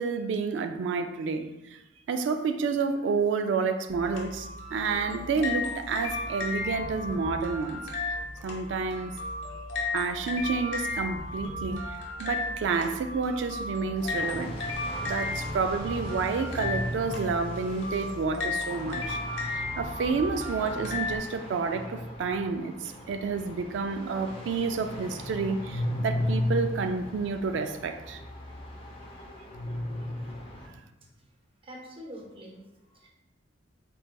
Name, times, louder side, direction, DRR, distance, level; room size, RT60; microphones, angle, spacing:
voice 1, 0.0-1.8 2.1-7.8 8.4-9.1 9.9-11.9 12.2-14.6 15.0-19.2 19.5-28.2, right 4 dB, 65° right, 8 dB, 0.3 m, -30 dB
sound 1, 3.9-21.2, left 3 dB, 90° left, 1.0 m, -35 dB
sound 2, 14.0-30.7, left 1 dB, 30° left, 0.6 m, -36 dB
voice 2, 31.6-33.1, equal, 30° right, -1 dB, 0.8 m, -45 dB
4.5 x 4.0 x 2.2 m, 1.0 s
head